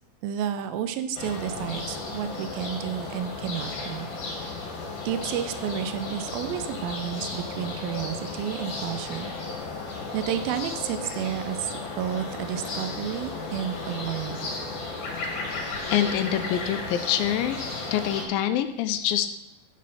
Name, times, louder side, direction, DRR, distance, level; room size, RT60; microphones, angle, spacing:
voice 1, 0.2-4.1 4.4-4.5 5.1-9.3 10.1-14.5, right 10 dB, 90° right, 9 dB, 2.5 m, -31 dB
sound 1, 1.2-18.3, left 3 dB, 50° left, 2.1 m, -34 dB
voice 2, 15.9-17.6 17.9-19.3, left 10 dB, 85° left, 10 dB, 2.4 m, -25 dB
9.5 x 5.1 x 5.5 m, 0.88 s
omnidirectional pair, 4.1 m